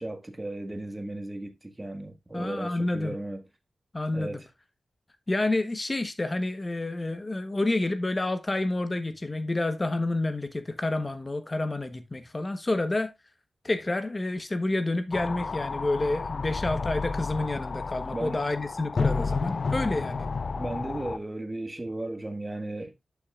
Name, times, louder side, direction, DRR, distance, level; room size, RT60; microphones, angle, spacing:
voice 1, 0.0-3.4 4.1-4.5 18.1-18.4 20.5-22.9, right 1 dB, 25° right, 1.6 m, -35 dB
voice 2, 2.3-3.2 3.9-4.4 5.3-13.1 13.6-20.3, left 2 dB, 35° left, 1.1 m, -29 dB
sound 1, 15.1-21.2, left 4 dB, 60° left, 0.5 m, -31 dB
11.5 x 5.9 x 2.4 m
cardioid pair, 45°, 0 cm